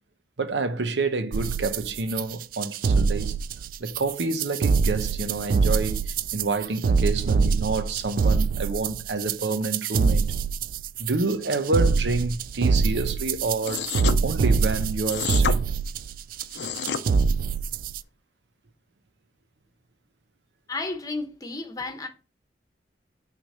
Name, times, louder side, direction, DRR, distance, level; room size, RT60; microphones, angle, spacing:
voice 1, 0.4-3.4 3.8-10.3 11.0-13.9 14.2-15.6, right 3 dB, 85° right, 0.8 m, -28 dB
sound 1, 1.3-18.0, right 5 dB, 50° right, 0.3 m, -24 dB
sound 2, 13.6-14.2 15.1-15.6 16.4-17.0, left 7 dB, 80° left, 0.6 m, -29 dB
voice 2, 20.7-22.1, left 3 dB, 20° left, 1.0 m, -32 dB
6.2 x 3.4 x 5.5 m
head